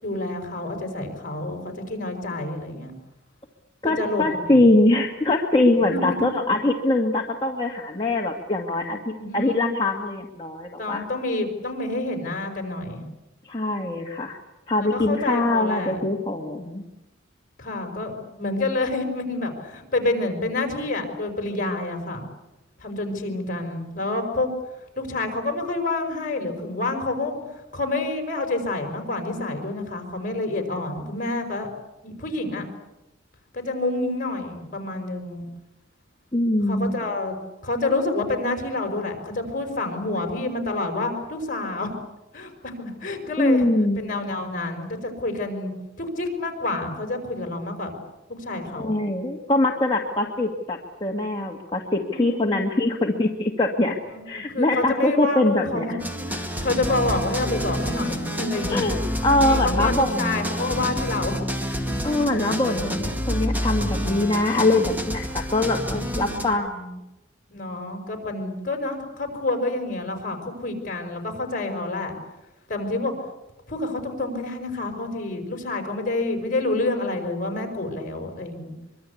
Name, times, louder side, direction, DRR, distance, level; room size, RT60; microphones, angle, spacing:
voice 1, 0.0-2.9 3.8-4.6 5.9-6.2 9.2-9.7 10.8-13.0 14.8-16.0 17.6-22.2 22.8-24.5 25.0-27.4 27.7-31.7 32.0-32.7 33.5-35.5 36.7-37.3 37.6-41.9 42.3-43.7 44.0-45.7 46.0-48.0 48.3-49.0 52.0-52.6 54.1-54.2 54.5-55.9 56.3-58.9 59.4-61.4 65.5-66.3 67.5-72.2 72.7-73.1 73.7-78.7, left 2 dB, 45° left, 4 dB, 5.3 m, -28 dB
voice 2, 3.8-11.0 13.4-14.4 14.7-16.8 36.3-37.0 43.4-44.0 48.7-54.0 54.3-56.0 58.7-60.3 62.0-67.0, left 2 dB, 25° left, 0 dB, 1.9 m, -23 dB
sound 1, 56.0-66.5, equal, 10° right, 2.1 m, -28 dB
24.5 x 24.0 x 8.5 m, 0.99 s
head